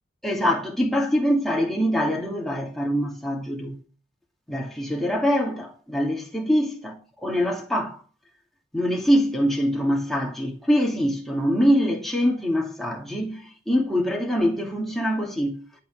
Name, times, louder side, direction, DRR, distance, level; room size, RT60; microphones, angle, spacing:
voice 1, 0.2-3.8 4.5-7.0 7.2-8.0 8.7-15.6, equal, ahead, 2.5 m, -24 dB
11.5 x 5.8 x 7.0 m
head